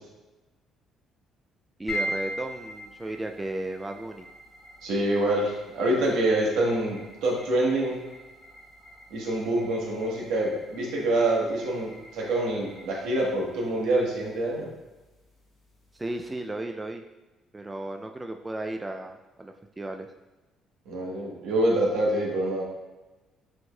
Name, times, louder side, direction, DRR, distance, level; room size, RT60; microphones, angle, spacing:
voice 1, 1.8-4.3 15.9-17.0 17.5-20.1, right 1 dB, 15° right, 4 dB, 0.3 m, -34 dB
sound 1, 1.9-16.3, equal, 40° left, 1.5 m, -42 dB
voice 2, 4.8-8.0 9.1-14.7 20.9-22.6, right 1 dB, 80° right, -3 dB, 1.2 m, -26 dB
6.2 x 3.1 x 2.2 m, 1.1 s
cardioid pair, 80°, 0 cm